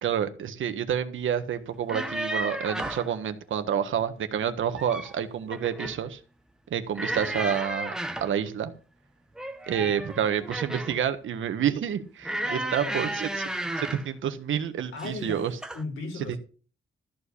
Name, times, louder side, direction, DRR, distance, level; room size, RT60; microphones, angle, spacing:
voice 1, 0.0-6.2 6.7-7.9 8.2-8.7 9.7-15.5 16.3-16.4, right 8 dB, 75° right, 1.5 m, -29 dB
sound 1, 1.7-3.1 4.5-5.2 5.5-6.0 6.9-8.4 9.3-11.0 12.2-14.1 15.0-15.3 15.6-15.8, right 1 dB, 5° right, 1.1 m, -33 dB
voice 2, 9.7-10.0 12.4-13.2 14.9-15.4 15.7-16.4, left 3 dB, 85° left, 4.7 m, -37 dB
13.5 x 5.1 x 8.3 m
wide cardioid pair, 170°, 20 cm